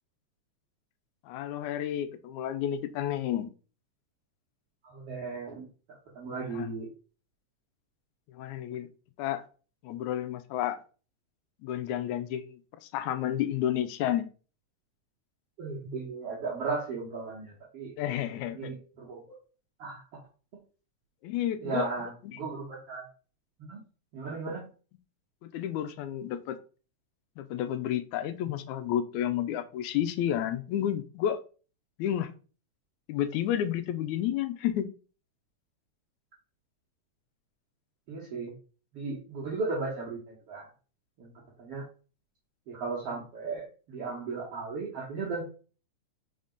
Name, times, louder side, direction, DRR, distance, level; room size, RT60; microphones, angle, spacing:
voice 1, 1.3-3.5 6.5-6.7 8.3-8.9 9.2-9.4 9.8-10.8 11.6-14.3 18.0-18.7 21.2-22.4 25.4-26.6 27.4-31.4 32.0-32.3 33.1-34.9, left 11 dB, 85° left, 11 dB, 2.1 m, -31 dB
voice 2, 4.8-5.7 6.2-6.9 15.6-17.9 18.5-19.4 19.8-20.0 21.6-23.1 23.6-23.8 24.1-24.6 38.1-38.5 38.9-40.7 41.2-41.3 41.6-41.8 42.7-45.4, right 4 dB, 55° right, -4 dB, 2.3 m, -36 dB
5.1 x 4.0 x 5.0 m, 0.37 s
omnidirectional pair, 3.3 m